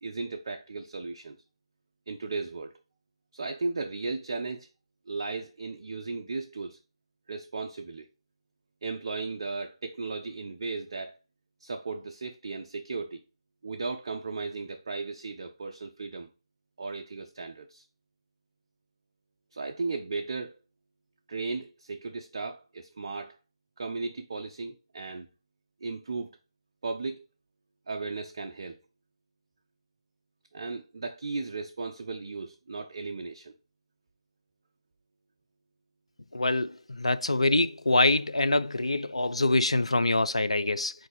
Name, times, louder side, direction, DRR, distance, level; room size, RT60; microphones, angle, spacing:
voice 1, 0.0-1.4 2.1-2.8 3.3-4.7 5.1-6.8 7.3-8.1 8.8-11.2 11.6-13.2 13.6-16.3 16.8-17.9 19.5-20.6 21.3-23.4 23.8-25.3 25.8-26.3 26.8-27.2 27.9-28.8 30.5-33.5, right 3 dB, 45° right, 0.4 m, -36 dB
voice 2, 36.3-36.7 37.0-40.9, left 2 dB, 75° left, 0.3 m, -25 dB
4.6 x 2.5 x 3.9 m
figure-of-eight pair, 150°, 3 cm